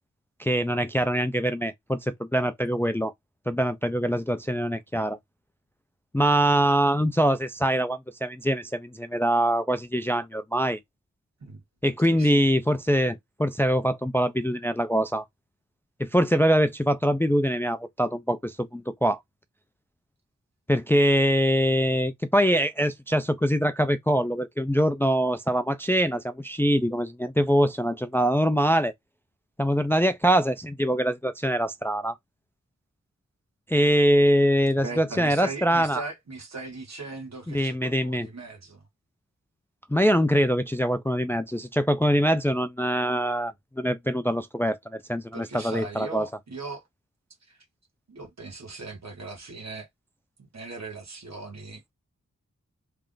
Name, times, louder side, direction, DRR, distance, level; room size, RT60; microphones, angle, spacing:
voice 1, 0.4-3.1 3.5-5.2 6.1-10.8 11.8-15.2 16.0-19.2 20.7-28.9 29.6-32.2 33.7-36.0 37.5-38.3 39.9-46.3, equal, 10° left, 0.3 m, -23 dB
voice 2, 12.1-12.5 34.8-38.8 45.3-46.8 47.5-47.6 48.1-49.9 50.5-51.8, right 3 dB, 60° right, 1.3 m, -39 dB
3.3 x 2.4 x 3.6 m
wide cardioid pair, 110°, 30 cm